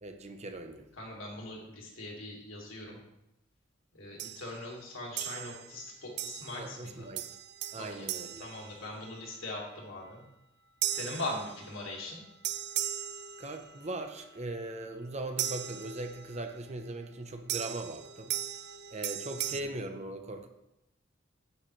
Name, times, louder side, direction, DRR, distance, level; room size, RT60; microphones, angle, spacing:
voice 1, 0.0-0.9 6.6-7.3 7.7-8.5 13.4-18.4 18.9-20.5, right 2 dB, 35° right, 6 dB, 0.8 m, -39 dB
voice 2, 1.0-3.0 3.9-7.1 7.7-8.1 8.4-10.2 10.9-12.2, left 1 dB, 80° left, -2 dB, 2.8 m, -41 dB
sound 1, 4.2-4.6 5.2-5.8 6.2-6.7 7.2-9.3 10.8-12.0 12.4-13.9 15.4-16.4 17.5-19.6, right 11 dB, 55° right, 0.5 m, -37 dB
9.4 x 9.3 x 3.3 m, 0.86 s
head